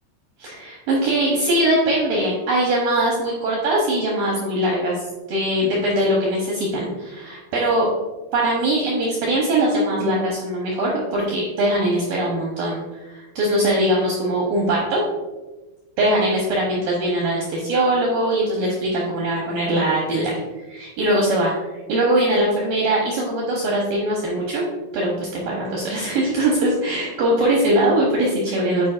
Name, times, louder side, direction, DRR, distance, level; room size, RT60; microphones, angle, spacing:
voice 1, 0.4-7.9 8.3-15.0 16.0-24.6 24.9-28.9, right 1 dB, 80° right, -3 dB, 2.0 m, -21 dB
10.0 x 4.8 x 2.4 m, 1.2 s
omnidirectional pair, 5.3 m